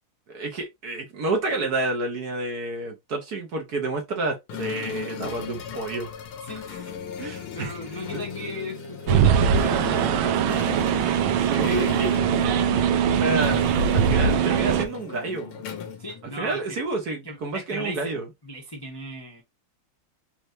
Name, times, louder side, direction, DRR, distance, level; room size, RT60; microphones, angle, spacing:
voice 1, 0.3-6.1 7.2-7.7 8.1-8.2 11.3-12.1 13.1-13.6 13.9-15.6 16.4-18.2, right 2 dB, 55° right, 1.5 m, -29 dB
sound 1, 4.5-16.8, left 8 dB, 85° left, 1.8 m, -37 dB
voice 2, 7.5-10.6 16.0-16.8 17.0-18.1 18.4-19.4, equal, 15° left, 0.9 m, -36 dB
sound 2, 9.1-14.9, right 8 dB, 85° right, 1.5 m, -21 dB
4.5 x 3.2 x 2.6 m
omnidirectional pair, 2.3 m